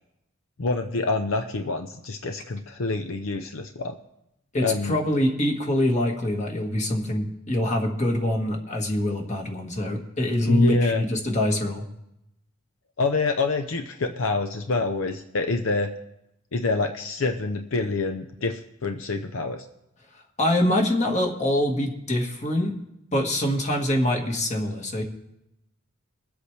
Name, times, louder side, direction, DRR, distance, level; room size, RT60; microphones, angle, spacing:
voice 1, 0.6-4.0 4.6-5.0 10.5-11.0 13.0-15.9 16.5-19.7, left 3 dB, 80° left, 6 dB, 0.7 m, -26 dB
voice 2, 4.5-11.8 20.4-22.8 23.1-25.0, left 1 dB, 35° left, 1 dB, 1.7 m, -24 dB
22.5 x 8.1 x 3.3 m, 0.85 s
head